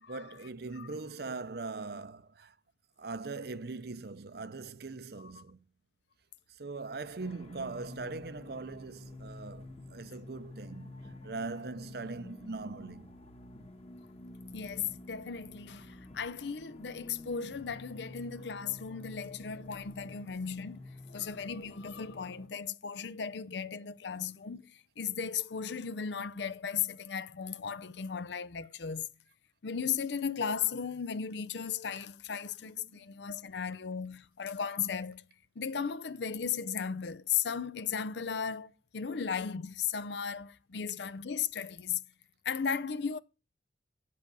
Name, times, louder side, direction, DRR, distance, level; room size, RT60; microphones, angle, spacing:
voice 1, 0.0-2.6 3.0-5.6 6.5-13.1 32.8-33.0, right 3 dB, 60° right, 0.7 m, -41 dB
sound 1, 7.2-22.5, left 2 dB, 35° left, 1.3 m, -49 dB
voice 2, 14.5-20.8 21.1-29.1 29.6-35.2 35.6-42.0 42.4-43.2, left 7 dB, 75° left, 0.6 m, -36 dB
9.0 x 7.6 x 5.3 m
head